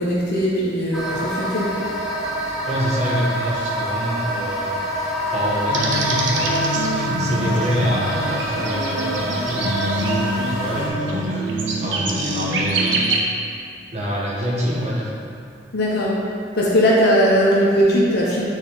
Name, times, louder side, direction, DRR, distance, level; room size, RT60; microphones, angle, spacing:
voice 1, 0.0-1.8 15.7-16.2 16.6-18.4, equal, 60° left, -5 dB, 0.8 m, -19 dB
sound 1, 0.9-10.9, equal, ahead, 0.9 m, -26 dB
voice 2, 2.6-4.8 5.0-13.1 13.9-15.1, equal, 35° right, -5 dB, 1.0 m, -26 dB
sound 2, 5.7-13.2, right 1 dB, 85° right, 0.8 m, -24 dB
9.1 x 3.6 x 3.4 m, 2.5 s
head